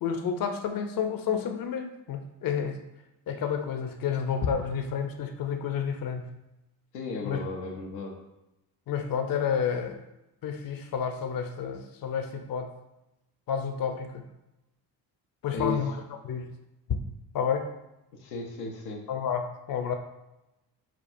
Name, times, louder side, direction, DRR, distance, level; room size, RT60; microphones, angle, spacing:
voice 1, 0.0-2.8 3.3-6.3 7.2-7.4 8.9-10.0 10.4-12.7 13.5-14.3 15.4-15.9 16.2-16.5 17.3-17.7 19.1-19.9, left 7 dB, 45° left, 6 dB, 0.7 m, -30 dB
voice 2, 6.9-8.2 15.5-15.8 18.2-19.1, left 3 dB, 90° left, -1 dB, 0.6 m, -34 dB
5.9 x 2.3 x 2.6 m, 0.93 s
hypercardioid pair, 40°, 50 cm